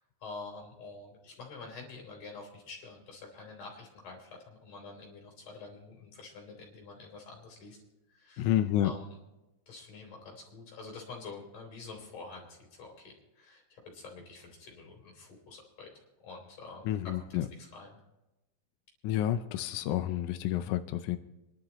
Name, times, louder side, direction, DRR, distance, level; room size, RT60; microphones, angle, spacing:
voice 1, 0.0-7.8 8.1-8.5 8.8-9.1 9.7-15.9 16.2-16.9 17.1-17.3 17.6-18.0, left 3 dB, 60° left, 0 dB, 5.2 m, -47 dB
voice 2, 8.4-8.9 16.8-17.5 19.0-21.2, left 12 dB, 80° left, 9 dB, 1.8 m, -29 dB
26.5 x 11.5 x 3.0 m, 0.98 s
omnidirectional pair, 4.1 m